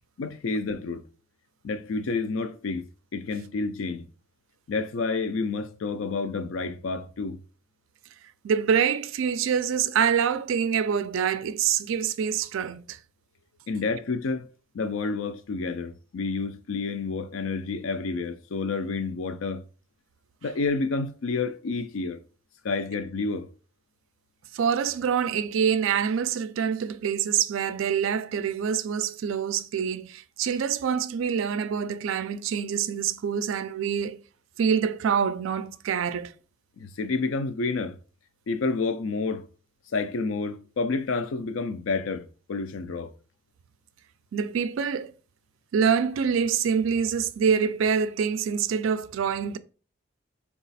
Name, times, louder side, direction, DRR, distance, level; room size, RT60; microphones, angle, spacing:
voice 1, 0.2-1.0 1.6-2.9 3.1-4.1 4.7-7.4 13.7-14.5 14.7-19.6 20.4-22.2 22.6-23.5 36.8-38.0 38.5-39.5 39.9-42.2 42.5-43.1, left 4 dB, 75° left, 0.4 m, -29 dB
voice 2, 8.4-13.0 24.5-34.2 34.6-36.3 44.3-45.1 45.7-49.6, right 7 dB, 75° right, 0.3 m, -26 dB
3.9 x 2.4 x 4.0 m
head